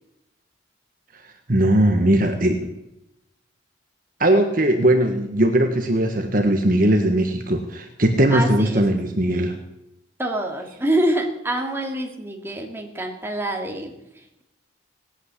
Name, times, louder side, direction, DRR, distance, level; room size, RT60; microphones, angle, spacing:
voice 1, 1.5-2.7 4.2-9.6, right 1 dB, 45° right, 5 dB, 1.5 m, -19 dB
voice 2, 8.3-8.8 10.2-14.4, right 1 dB, 10° right, 1 dB, 2.4 m, -26 dB
18.5 x 9.0 x 8.3 m, 0.87 s
head